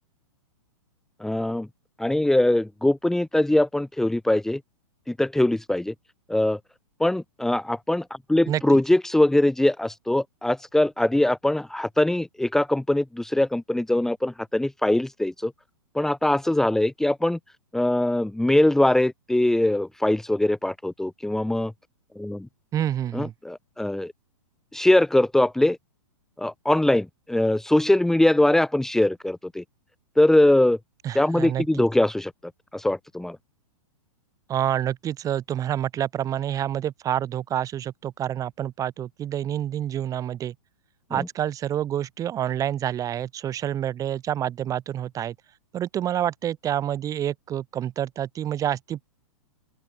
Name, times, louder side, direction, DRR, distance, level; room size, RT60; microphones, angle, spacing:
voice 1, 1.2-1.7 2.0-4.6 5.1-5.9 6.3-6.6 7.0-15.5 15.9-17.4 17.7-21.7 22.2-22.5 23.1-24.1 24.7-25.8 26.4-29.6 30.2-30.8 31.1-32.3 32.7-33.4 41.1-41.3, left 1 dB, ahead, 3.7 m, -22 dB
voice 2, 22.7-23.3 31.0-31.9 34.5-40.5 41.1-45.3 45.7-49.1, right 11 dB, 20° right, 4.4 m, -28 dB
open air
hypercardioid pair, 155°, 18 cm